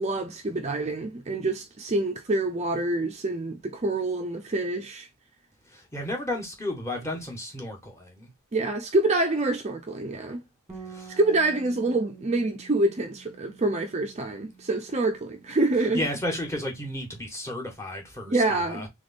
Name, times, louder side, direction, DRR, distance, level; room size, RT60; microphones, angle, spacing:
voice 1, 0.0-5.1 8.5-10.4 11.2-16.0 18.3-18.9, right 2 dB, 30° right, 0.4 m, -26 dB
voice 2, 5.7-8.3 10.9-11.2 15.9-18.9, left 1 dB, 10° left, 1.3 m, -33 dB
Bass guitar, 10.7-16.9, right 5 dB, 10° right, 1.4 m, -49 dB
3.6 x 3.4 x 3.9 m
head